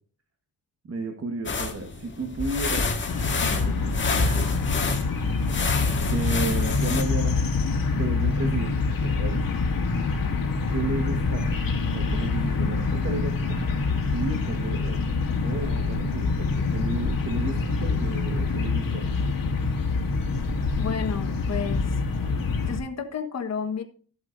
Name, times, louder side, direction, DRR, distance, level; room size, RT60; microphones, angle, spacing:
voice 1, 0.9-3.0 3.3-4.5 6.0-7.6 8.0-9.5 10.7-11.6 11.9-13.6 14.1-15.1 15.4-19.2, right 3 dB, 40° right, 5 dB, 1.5 m, -33 dB
sound 1, 1.5-7.0, left 4 dB, 35° left, 1.7 m, -29 dB
sound 2, 3.1-22.8, left 4 dB, 70° left, 2.0 m, -26 dB
voice 2, 20.8-22.0 22.7-23.8, left 6 dB, 50° left, 5 dB, 1.4 m, -31 dB
13.5 x 7.9 x 2.6 m, 0.42 s
cardioid pair, 115°, 35 cm